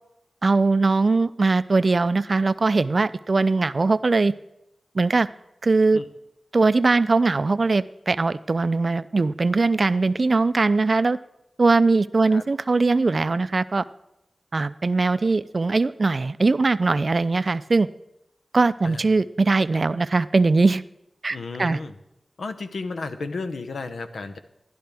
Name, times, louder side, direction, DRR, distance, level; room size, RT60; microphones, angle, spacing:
voice 1, 0.4-4.3 4.9-5.3 5.6-6.0 6.5-11.2 11.6-13.8 14.5-17.9 18.5-20.8 21.2-21.8, right 3 dB, 55° right, 15 dB, 0.4 m, -21 dB
voice 2, 21.3-22.0 22.4-24.4, left 3 dB, 90° left, 9 dB, 0.7 m, -33 dB
12.0 x 11.0 x 3.4 m, 0.85 s
cardioid pair, 55°, 0 cm